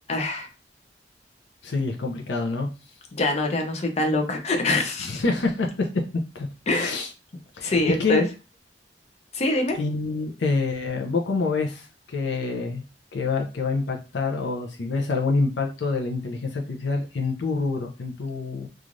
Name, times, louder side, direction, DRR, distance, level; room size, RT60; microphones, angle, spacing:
voice 1, 0.1-0.5 3.1-5.2 6.7-7.0 7.6-8.3 9.3-9.8, left 2 dB, 40° left, 5 dB, 0.5 m, -24 dB
voice 2, 1.6-2.7 5.0-6.0 6.3-7.1 7.5-8.2 9.7-12.8 13.1-18.7, left 3 dB, 90° left, 2 dB, 0.5 m, -27 dB
3.1 x 2.4 x 2.5 m, 0.31 s
head